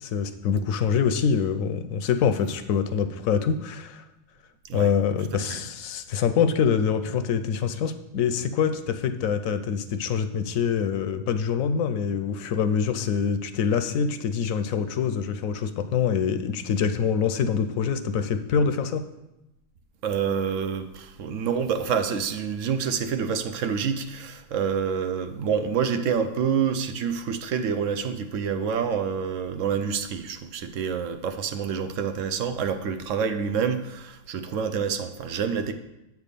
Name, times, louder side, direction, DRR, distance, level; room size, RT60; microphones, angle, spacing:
voice 1, 0.0-4.0 4.7-19.0, left 7 dB, 75° left, 9 dB, 1.0 m, -25 dB
voice 2, 5.3-5.7 20.0-35.7, right 7 dB, 70° right, 8 dB, 0.9 m, -27 dB
8.2 x 3.5 x 6.6 m, 0.94 s
omnidirectional pair, 1.5 m